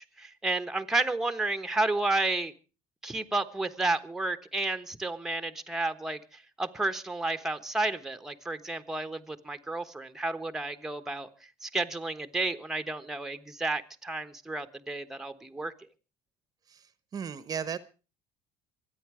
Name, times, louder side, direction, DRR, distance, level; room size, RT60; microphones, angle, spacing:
voice 1, 0.0-2.5 3.0-11.3 11.6-15.7, right 2 dB, 5° right, 9 dB, 1.2 m, -31 dB
voice 2, 16.7-17.8, right 7 dB, 35° right, 15 dB, 1.0 m, -36 dB
25.5 x 9.3 x 4.9 m, 0.36 s
cardioid pair, 115°, 11 cm